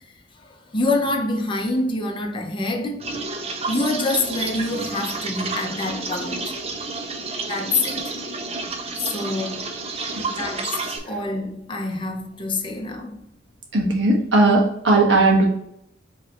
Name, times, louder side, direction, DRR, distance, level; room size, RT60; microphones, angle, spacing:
voice 1, 0.4-3.1 3.7-6.5 7.5-8.0 8.9-9.7 10.3-10.8 11.0-13.2, left 2 dB, 30° left, 0.8 m, -26 dB
sound 1, 3.0-11.0, right 3 dB, 35° right, 0.6 m, -30 dB
voice 2, 13.7-15.5, right 2 dB, 80° right, 1.3 m, -17 dB
5.2 x 3.1 x 3.0 m
head